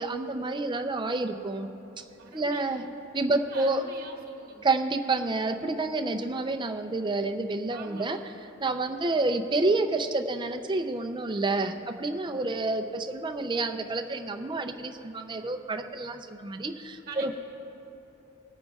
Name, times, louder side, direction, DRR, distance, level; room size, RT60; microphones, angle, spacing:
voice 1, 0.0-1.7 2.0-2.1 2.3-2.8 3.1-3.8 4.6-8.2 8.6-17.4, right 2 dB, 20° right, 6 dB, 0.5 m, -29 dB
voice 2, 2.2-2.9 3.3-4.7 7.7-8.1 8.8-9.1 17.1-17.4, right 4 dB, 50° right, 1 dB, 1.2 m, -45 dB
25.0 x 9.2 x 2.4 m, 3.0 s
head